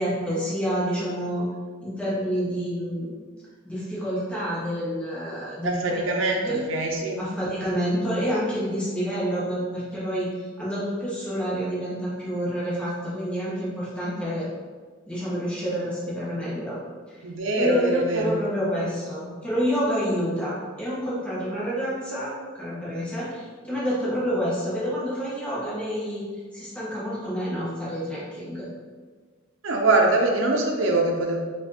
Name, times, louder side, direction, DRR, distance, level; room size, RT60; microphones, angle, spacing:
voice 1, 0.0-1.5 1.8-3.1 3.6-6.6 7.2-14.5 15.1-16.8 17.1-17.2 17.5-26.2 26.5-28.7, equal, 5° left, -9 dB, 1.1 m, -28 dB
voice 2, 5.6-7.2 17.2-18.3 29.6-31.4, right 2 dB, 75° right, 0 dB, 0.6 m, -23 dB
4.3 x 2.6 x 2.8 m, 1.5 s
head